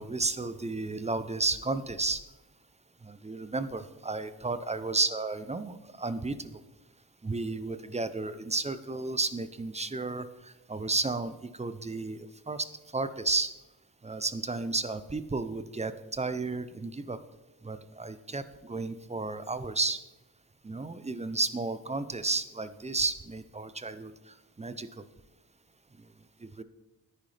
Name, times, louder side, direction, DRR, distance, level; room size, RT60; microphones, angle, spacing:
voice 1, 0.0-2.2 3.0-6.4 7.2-12.7 12.9-13.5 14.0-17.2 17.6-20.0 20.6-24.1 24.6-25.0 26.6-26.7, right 3 dB, 20° right, 13 dB, 0.5 m, -32 dB
10.0 x 9.7 x 3.3 m, 1.0 s
cardioid pair, 80°, 36 cm